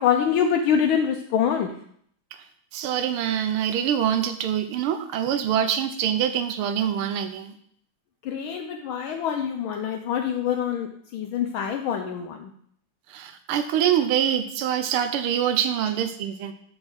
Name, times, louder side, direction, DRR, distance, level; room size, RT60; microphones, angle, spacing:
voice 1, 0.0-1.7 8.2-12.5, left 8 dB, 75° left, 4 dB, 1.4 m, -25 dB
voice 2, 2.7-7.5 13.1-16.5, right 9 dB, 90° right, 9 dB, 1.6 m, -25 dB
6.3 x 6.0 x 6.4 m, 0.64 s
omnidirectional pair, 2.4 m